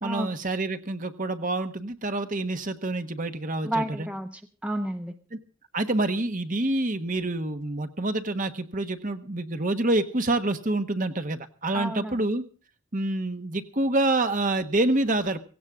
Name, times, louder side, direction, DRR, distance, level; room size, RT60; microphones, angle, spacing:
voice 1, 0.0-4.1 5.3-5.4 5.7-12.4 12.9-15.4, right 2 dB, 40° right, 8 dB, 1.3 m, -27 dB
voice 2, 3.6-5.1 11.7-12.2, right 1 dB, 5° right, 6 dB, 1.0 m, -31 dB
17.0 x 17.0 x 3.7 m, 0.38 s
head